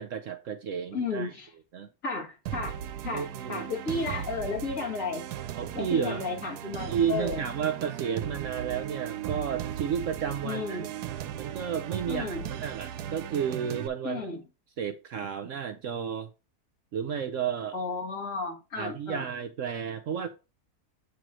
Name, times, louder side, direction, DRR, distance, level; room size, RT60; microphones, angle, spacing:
voice 1, 0.0-1.3 1.7-1.9 3.1-3.7 5.6-6.2 6.9-10.9 11.4-14.2 14.8-16.3 16.9-17.8 18.7-20.3, right 8 dB, 65° right, 0.8 m, -32 dB
voice 2, 0.9-1.5 2.0-2.8 3.0-5.2 5.7-7.4 10.4-10.9 12.1-12.5 14.0-14.4 17.7-19.3, left 4 dB, 55° left, 2.4 m, -33 dB
sound 1, 2.5-13.9, right 10 dB, 80° right, 1.2 m, -37 dB
8.2 x 3.1 x 6.2 m
omnidirectional pair, 1.7 m